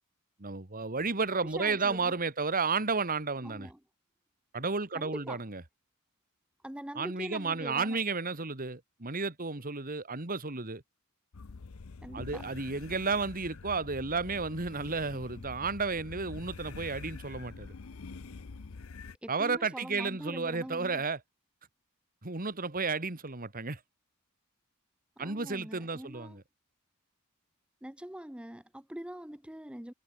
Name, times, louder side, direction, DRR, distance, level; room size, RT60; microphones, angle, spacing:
voice 1, 0.4-3.7 4.5-5.6 7.0-10.8 12.1-17.7 19.3-21.2 22.2-23.8 25.2-26.4, right 4 dB, 40° right, 2.1 m, -32 dB
voice 2, 1.5-2.1 3.4-3.8 4.9-5.4 6.6-8.0 12.0-12.4 19.2-21.0 25.2-26.4 27.8-29.9, equal, 5° right, 0.8 m, -43 dB
sound 1, 11.3-19.2, left 4 dB, 75° left, 0.7 m, -46 dB
head